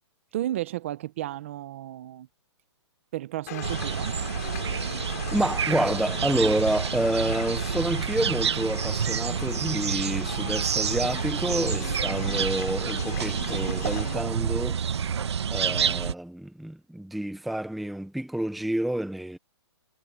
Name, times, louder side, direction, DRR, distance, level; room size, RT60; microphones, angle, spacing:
voice 1, 0.3-2.3 3.1-4.2, right 14 dB, 25° right, 0.8 m, -33 dB
sound 1, 3.5-14.2, left 14 dB, 35° left, 4.5 m, -39 dB
sound 2, 3.6-16.1, right 7 dB, 65° right, 1.3 m, -28 dB
voice 2, 5.3-14.8 15.5-19.4, right 1 dB, ahead, 0.9 m, -29 dB
hypercardioid pair, 175°, 15 cm